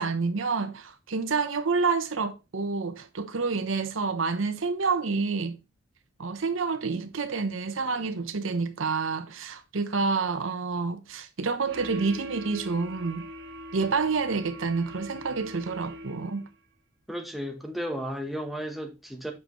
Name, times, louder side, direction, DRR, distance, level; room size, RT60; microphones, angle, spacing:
voice 1, 0.0-5.6 6.2-13.3 13.7-16.5, right 4 dB, 75° right, 0.8 m, -28 dB
sound 1, 11.7-16.5, equal, 55° right, 1.4 m, -42 dB
voice 2, 17.1-19.3, equal, ahead, 1.0 m, -34 dB
7.4 x 5.8 x 3.1 m
head